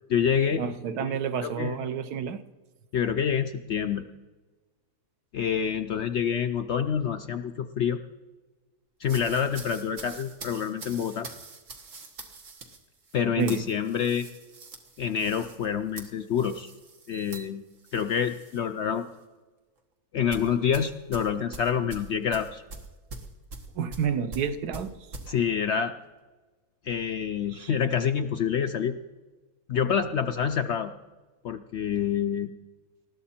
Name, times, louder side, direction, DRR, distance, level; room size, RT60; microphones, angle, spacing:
voice 1, 0.0-0.6 1.0-1.1 1.4-1.8 2.9-4.0 5.3-8.0 9.0-11.3 13.1-14.3 15.0-16.7 17.1-17.6 17.9-19.1 20.1-22.6 25.3-25.9 26.8-28.9 29.7-30.9 31.4-32.5, left 7 dB, 65° left, 8 dB, 0.7 m, -27 dB
voice 2, 0.6-2.4 13.4-13.6 17.1-17.4 23.8-24.9 27.5-27.7, right 7 dB, 80° right, 10 dB, 1.4 m, -30 dB
sound 1, 9.0-18.6 19.0-19.2 20.3-25.3, right 3 dB, 55° right, 1.7 m, -44 dB
20.0 x 13.0 x 4.3 m, 1.3 s
omnidirectional pair, 1.6 m